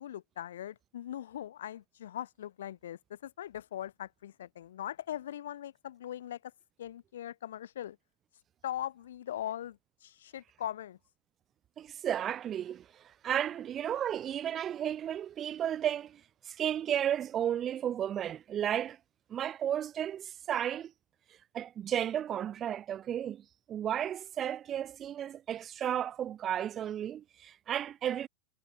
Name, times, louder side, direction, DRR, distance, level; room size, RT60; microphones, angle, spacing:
voice 1, 0.0-6.5 6.8-8.0 8.6-11.0, left 11 dB, 60° left, 1.5 m, -40 dB
voice 2, 11.8-16.2 16.5-19.0 19.3-20.9 21.5-23.4 23.7-28.3, right 10 dB, 25° right, 0.3 m, -33 dB
figure-of-eight pair, 90°, 0 cm